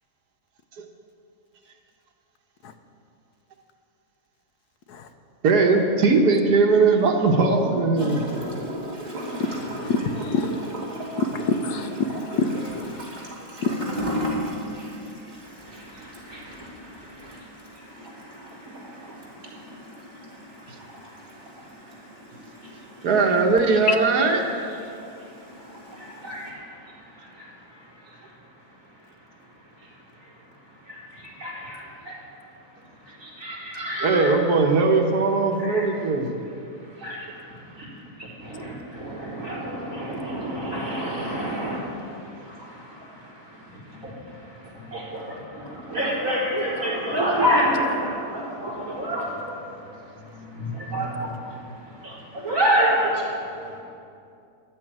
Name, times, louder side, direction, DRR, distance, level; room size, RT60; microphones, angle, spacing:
voice 1, 5.4-8.2 23.0-24.4 34.0-36.3, right 4 dB, 85° right, 2 dB, 1.7 m, -19 dB
Gurgling / Toilet flush, 8.0-26.5, equal, 25° right, 2.4 m, -36 dB
voice 2, 9.4-10.7 11.2-13.0 13.6-13.7, left 3 dB, 85° left, 8 dB, 1.4 m, -26 dB
voice 3, 14.7-23.1 24.7-34.3 35.6-36.0 36.7-37.9 38.2-53.8, equal, 55° right, -6 dB, 4.3 m, -31 dB
12.5 x 8.5 x 8.9 m, 2.6 s
omnidirectional pair, 1.6 m